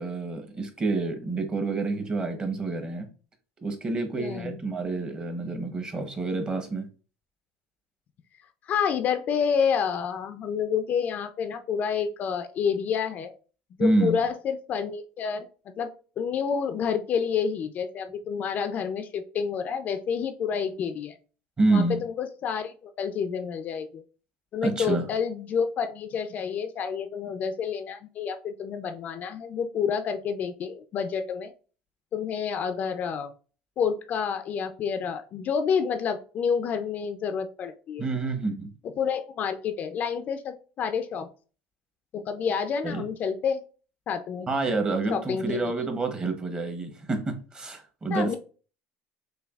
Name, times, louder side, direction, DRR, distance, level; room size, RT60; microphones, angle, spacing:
voice 1, 0.0-3.1 3.6-6.9 13.8-14.2 21.6-22.0 24.6-25.1 38.0-38.7 42.8-43.1 44.5-48.4, right 3 dB, 20° right, 0.8 m, -28 dB
voice 2, 4.1-4.6 8.7-13.3 13.8-15.5 15.8-21.2 21.7-24.0 24.5-31.5 32.1-33.3 33.8-38.0 39.0-41.3 42.1-43.6 44.1-44.5 45.1-45.7 48.1-48.4, left 6 dB, 40° left, 0.4 m, -29 dB
6.5 x 2.3 x 2.3 m
cardioid pair, 135°, 4 cm